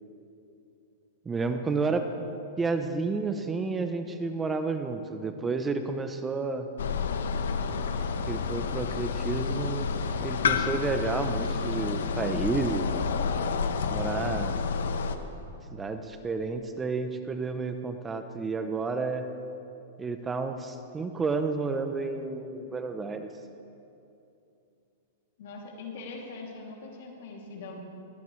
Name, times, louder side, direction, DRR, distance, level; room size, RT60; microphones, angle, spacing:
voice 1, 1.3-2.1 2.6-6.7 8.3-9.9 10.2-13.0 13.9-14.6 15.7-19.3 20.0-23.3, right 4 dB, 15° right, 7 dB, 0.7 m, -31 dB
sound 1, 6.8-15.2, left 5 dB, 85° left, 1.0 m, -29 dB
voice 2, 25.4-27.8, left 3 dB, 65° left, -2 dB, 2.7 m, -42 dB
19.5 x 17.5 x 3.2 m, 2.7 s
hypercardioid pair, 145°, 0 cm